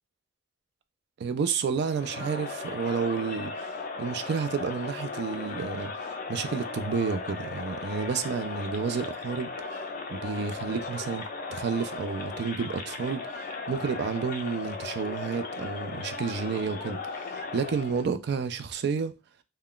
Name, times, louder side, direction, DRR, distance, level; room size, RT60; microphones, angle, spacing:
voice 1, 1.2-3.7 4.0-9.8 10.1-19.1, right 5 dB, 60° right, 0.3 m, -31 dB
Crowd, 1.8-18.1, left 4 dB, 45° left, 0.4 m, -37 dB
2.3 x 2.2 x 3.6 m
head